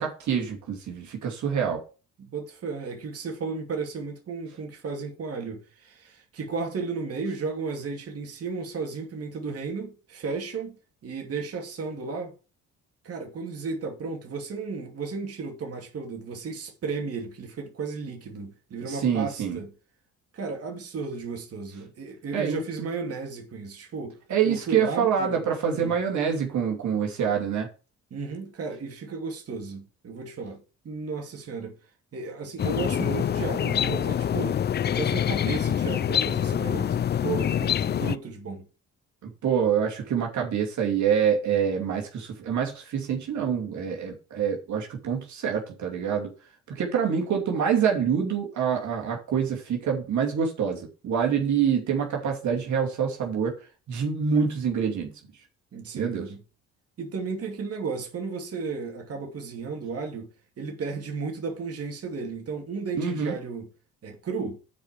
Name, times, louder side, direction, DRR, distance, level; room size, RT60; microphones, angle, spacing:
voice 1, 0.0-1.8 18.8-19.6 22.3-22.9 24.3-27.7 39.2-46.3 46.7-53.6 53.9-55.1 55.9-56.2 63.0-63.3, right 7 dB, 70° right, 2.8 m, -26 dB
voice 2, 2.2-12.3 13.0-19.7 20.3-24.2 24.4-25.4 25.7-25.9 28.1-31.7 32.1-34.6 34.9-38.7 55.7-56.4 57.0-60.3 60.6-63.7 64.0-64.6, right 4 dB, 50° right, 2.6 m, -34 dB
sound 1, 32.6-38.2, left 9 dB, 35° left, 0.4 m, -25 dB
8.2 x 5.0 x 7.6 m
cardioid pair, 90°, 30 cm